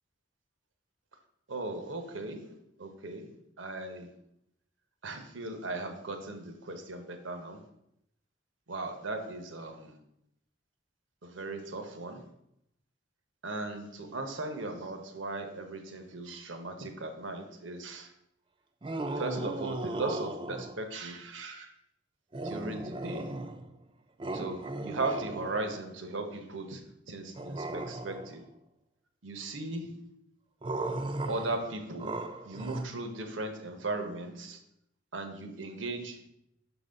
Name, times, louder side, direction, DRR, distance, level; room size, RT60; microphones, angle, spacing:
voice 1, 1.5-4.1 5.0-7.6 8.7-10.0 11.2-12.3 13.4-18.1 19.2-21.7 22.4-23.4 24.3-28.4 29.2-30.2 31.3-34.6 35.1-36.3, right 2 dB, 75° right, 6 dB, 1.0 m, -38 dB
sound 1, 18.8-20.9 22.3-23.8 24.2-25.9 27.3-28.4 30.6-32.8, right 2 dB, 25° right, 0.4 m, -37 dB
6.3 x 4.0 x 5.2 m, 0.78 s
head